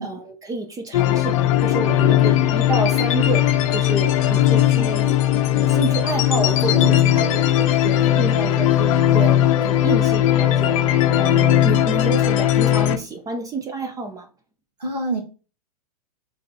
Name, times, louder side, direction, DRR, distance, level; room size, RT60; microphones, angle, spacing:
voice 1, 0.0-10.8 11.2-14.3, right 2 dB, 15° right, 0.6 m, -29 dB
sound 1, 0.9-13.0, left 12 dB, 55° left, 0.6 m, -18 dB
voice 2, 6.7-7.0 7.8-8.3 14.8-15.2, right 2 dB, 85° right, 1.5 m, -28 dB
3.9 x 3.4 x 4.0 m
hypercardioid pair, 100°, 20 cm